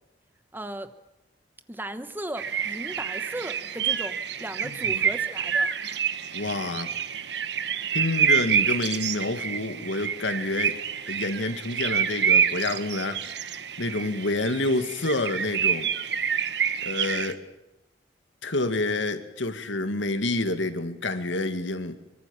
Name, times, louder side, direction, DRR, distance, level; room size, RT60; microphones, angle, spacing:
voice 1, 0.5-0.9 1.7-5.7, right 1 dB, 10° right, 11 dB, 1.1 m, -36 dB
sound 1, 2.4-17.3, right 7 dB, 65° right, 1.3 m, -27 dB
voice 2, 4.6-5.0 6.3-6.9 7.9-10.8 11.1-13.5 13.8-15.9 16.8-17.4 18.4-22.0, left 2 dB, 90° left, 9 dB, 2.1 m, -28 dB
24.0 x 23.5 x 7.1 m, 0.94 s
head